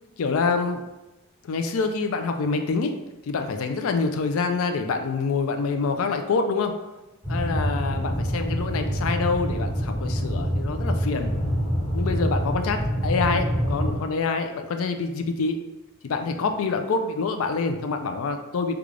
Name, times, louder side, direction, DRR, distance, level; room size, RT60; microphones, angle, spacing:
voice 1, 0.2-0.8 1.4-3.0 3.2-6.8 7.3-11.3 11.9-15.6 16.0-18.7, left 4 dB, 70° left, 6 dB, 0.4 m, -26 dB
sound 1, 7.2-14.0, equal, 30° left, 1.1 m, -26 dB
3.2 x 2.3 x 3.7 m, 1.1 s
head